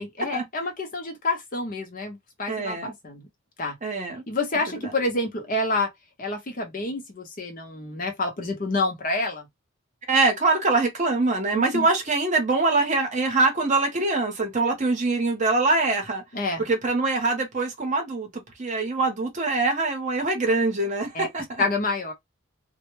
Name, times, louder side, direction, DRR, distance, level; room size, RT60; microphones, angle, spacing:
voice 1, 0.0-3.3 3.6-3.8 4.3-5.9 6.2-9.5 11.5-11.9 16.3-16.6 21.1-21.3 21.6-22.1, left 2 dB, 40° left, 0.7 m, -28 dB
voice 2, 2.5-2.9 3.8-4.2 4.8-4.9 10.1-16.2 16.6-18.3 18.6-21.6, right 3 dB, 35° right, 0.7 m, -23 dB
2.1 x 2.0 x 3.0 m
head